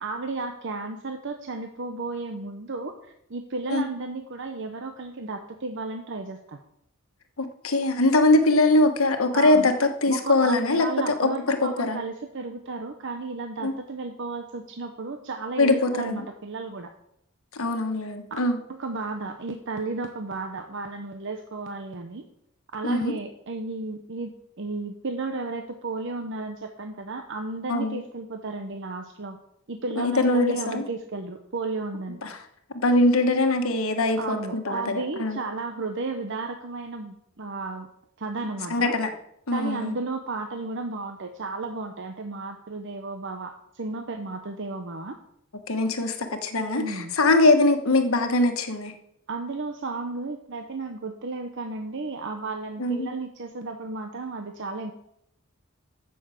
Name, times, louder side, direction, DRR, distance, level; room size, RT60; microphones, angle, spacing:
voice 1, 0.0-6.6 9.3-9.7 10.1-16.9 18.7-22.3 22.7-24.3 24.6-29.4 29.7-32.2 34.2-37.9 38.2-38.9 39.5-45.2 46.8-47.1 49.3-54.9, right 3 dB, 60° right, 6 dB, 0.8 m, -33 dB
voice 2, 7.4-12.0 13.6-13.7 15.6-16.2 17.5-18.6 22.8-23.1 27.7-28.0 30.0-30.8 32.2-32.3 32.8-35.4 38.7-39.1 39.5-39.9 45.7-48.9 52.8-53.1, left 2 dB, 70° left, 6 dB, 1.3 m, -22 dB
8.4 x 7.0 x 7.6 m, 0.76 s
head